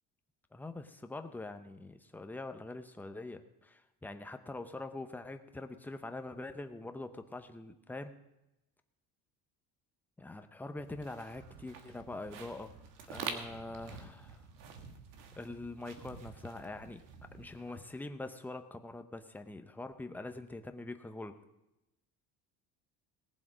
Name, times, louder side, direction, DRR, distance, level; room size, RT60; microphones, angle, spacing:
voice 1, 0.5-8.1 10.2-12.8 13.1-14.4 15.4-17.0 17.3-21.4, left 2 dB, 5° left, 8 dB, 0.6 m, -44 dB
sound 1, 10.8-18.0, right 6 dB, 75° right, 1.8 m, -47 dB
19.5 x 7.5 x 5.0 m, 0.93 s
cardioid pair, 160°, 33 cm